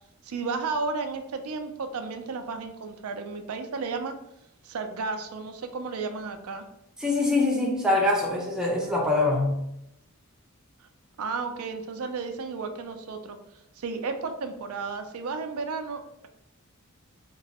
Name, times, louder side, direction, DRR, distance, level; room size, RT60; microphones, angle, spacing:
voice 1, 0.2-4.1 4.6-6.6 11.2-13.4 13.8-16.3, right 4 dB, 75° right, 6 dB, 0.4 m, -33 dB
voice 2, 7.0-9.7, left 2 dB, 5° right, -2 dB, 0.6 m, -24 dB
3.0 x 2.9 x 2.8 m, 0.82 s
head